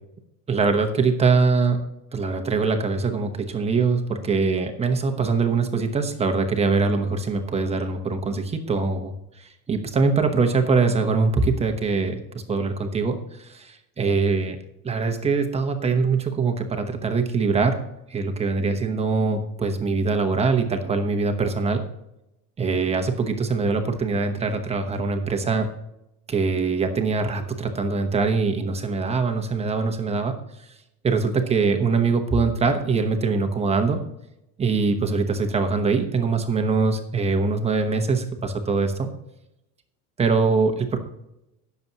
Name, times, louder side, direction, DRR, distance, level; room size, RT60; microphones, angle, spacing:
voice 1, 0.5-1.8 2.1-14.6 14.8-17.8 18.1-21.8 22.6-25.7 26.3-30.4 31.0-34.0 34.6-39.1 40.2-41.0, right 4 dB, 15° right, 5 dB, 1.0 m, -23 dB
20.0 x 7.0 x 2.9 m, 0.87 s
cardioid pair, 165°, 43 cm